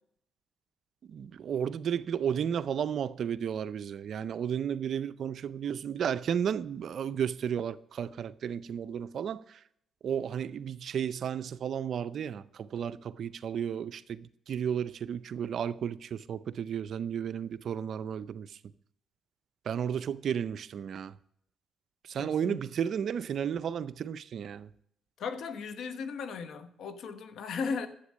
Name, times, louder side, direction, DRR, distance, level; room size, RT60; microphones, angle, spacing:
voice 1, 1.1-9.6 10.0-18.6 19.7-21.2 22.0-24.7, right 8 dB, 60° right, 0.5 m, -33 dB
voice 2, 22.2-22.6 25.2-27.9, left 5 dB, 70° left, 1.1 m, -36 dB
11.5 x 8.1 x 6.3 m
cardioid pair, 90°, 0 cm